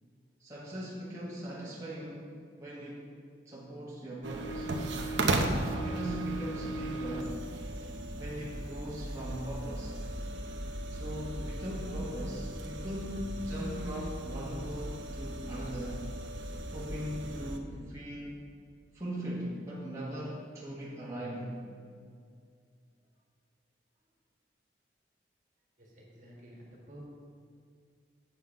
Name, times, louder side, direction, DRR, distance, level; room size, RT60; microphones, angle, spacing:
voice 1, 0.4-2.3 2.6-3.1 3.4-4.7 5.6-7.4 8.1-9.9 10.9-16.1 16.7-18.4 18.9-21.5, equal, 15° right, -7 dB, 1.4 m, -39 dB
sound 1, 4.2-17.6, right 1 dB, 85° right, 0.8 m, -36 dB
voice 2, 25.8-27.0, equal, 45° right, -2 dB, 1.7 m, -52 dB
7.9 x 5.7 x 5.7 m, 2.3 s
head